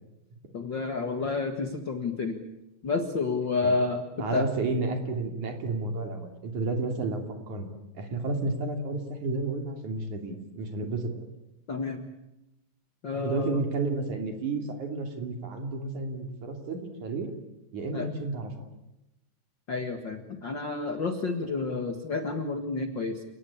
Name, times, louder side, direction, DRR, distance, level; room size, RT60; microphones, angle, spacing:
voice 1, 0.5-2.4 2.8-4.5 11.7-12.0 13.0-13.6 17.9-18.1 19.7-23.2, left 3 dB, 70° left, 7 dB, 1.1 m, -30 dB
voice 2, 4.2-11.1 13.1-17.3 17.7-18.5, right 3 dB, 45° right, 5 dB, 3.9 m, -31 dB
29.0 x 19.0 x 8.7 m, 0.93 s
omnidirectional pair, 5.0 m